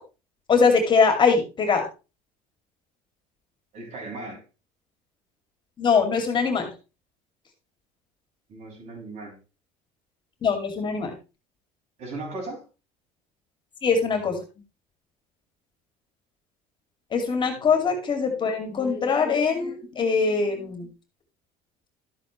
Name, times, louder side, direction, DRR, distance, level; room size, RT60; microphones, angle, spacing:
voice 1, 0.5-1.9 5.8-6.7 10.4-11.1 13.8-14.4 17.1-20.9, left 5 dB, 35° left, 5 dB, 2.6 m, -22 dB
voice 2, 3.7-4.4 8.5-9.4 12.0-12.6 17.5-17.6, right 2 dB, 55° right, 0 dB, 6.9 m, -37 dB
12.5 x 7.9 x 3.2 m, 0.30 s
cardioid pair, 115°, 14 cm